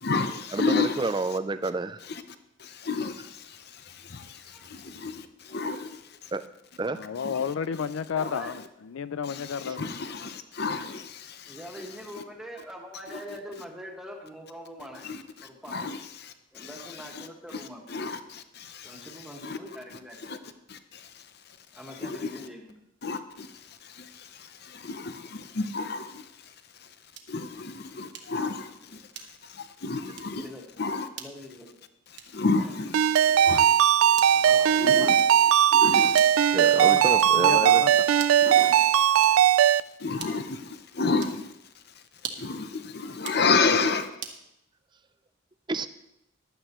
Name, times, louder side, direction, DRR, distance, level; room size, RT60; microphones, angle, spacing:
voice 1, 0.0-1.1 2.1-2.2 2.6-6.3 7.2-7.4 8.2-8.3 9.2-11.0 13.1-13.4 15.0-19.6 19.9-20.4 20.7-21.1 21.9-22.5 23.0-23.5 23.8-26.2 27.3-29.0 29.5-30.5 30.8-31.1 32.3-33.0 33.4-33.7 34.8-35.2 35.7-36.4 38.4-39.1 40.0-41.5 42.4-44.1, left 4 dB, 50° left, 0.8 m, -31 dB
voice 2, 0.5-2.0 6.3-6.4 6.8-7.0 36.5-37.8 45.7-45.9, right 3 dB, 20° right, 0.4 m, -29 dB
voice 3, 6.9-9.9 36.7-38.0 41.0-41.2, left 7 dB, 75° left, 0.4 m, -32 dB
voice 4, 8.1-8.5 11.5-15.1 15.4-15.9 16.5-17.8 18.8-20.3 21.7-22.7 27.8-28.3 30.3-30.6 31.2-31.7 32.6-32.8 34.3-35.1, equal, 5° right, 1.7 m, -43 dB
sound 1, 27.1-27.4 28.1-28.5 29.1-29.6 30.1-30.4 31.1-31.4 32.1-32.5 33.1-33.5 34.1-34.5 35.1-35.5 36.1-36.5 37.2-37.5 38.1-38.5 39.1-39.6 40.2-40.6 41.2-41.5 42.1-42.6 43.1-43.5 44.2-44.4, right 7 dB, 60° right, 1.2 m, -42 dB
Ringtone, 32.9-39.8, right 10 dB, 85° right, 0.3 m, -19 dB
15.0 x 11.5 x 3.1 m
head